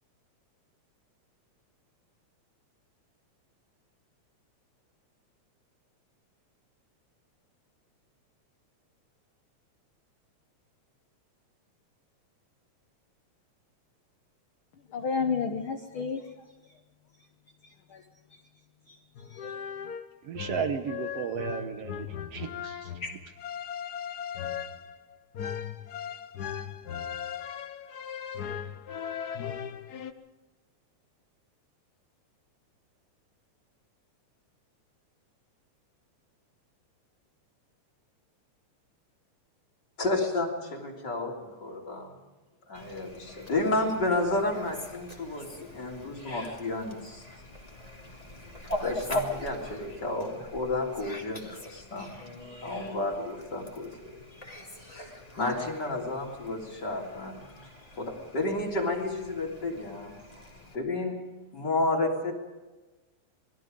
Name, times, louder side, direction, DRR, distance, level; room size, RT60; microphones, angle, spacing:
voice 1, 14.9-16.3 17.6-18.0 18.9-19.9, left 5 dB, 60° left, 1.5 m, -33 dB
sound 1, 19.1-30.1, left 8 dB, 90° left, 0.8 m, -38 dB
voice 2, 20.2-22.9, right 7 dB, 65° right, 1.9 m, -34 dB
voice 3, 40.0-42.1 42.7-47.2 48.8-54.4 54.9-57.7 58.0-60.2 60.7-61.2 61.5-62.3, left 2 dB, 35° left, 3.7 m, -31 dB
Fowl, 42.7-60.7, left 1 dB, 15° left, 2.5 m, -42 dB
28.5 x 21.0 x 5.2 m
omnidirectional pair, 3.3 m